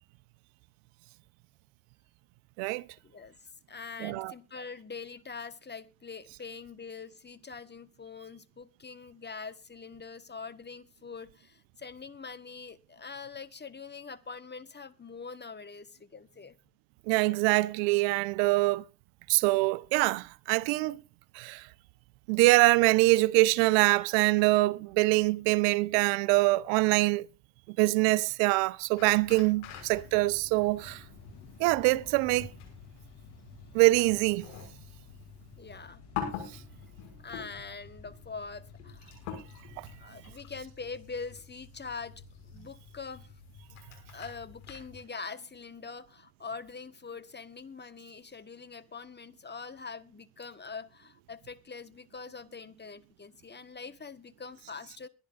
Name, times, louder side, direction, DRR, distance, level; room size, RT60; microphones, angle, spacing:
voice 1, 3.0-3.3 3.7-16.6 35.6-36.0 37.2-39.1 40.0-42.2 42.5-43.3 44.1-55.1, left 5 dB, 25° left, 1.3 m, -43 dB
voice 2, 4.0-4.3 17.1-18.8 19.3-21.0 21.3-21.6 22.3-27.3 27.8-31.0 31.6-32.5 33.7-34.5 39.8-39.9, right 22 dB, 80° right, 0.7 m, -24 dB
sound 1, 29.0-45.0, left 7 dB, 85° left, 6.1 m, -46 dB
sound 2, 29.7-40.0, left 4 dB, 65° left, 7.9 m, -56 dB
22.5 x 10.5 x 2.5 m
hypercardioid pair, 60°, 43 cm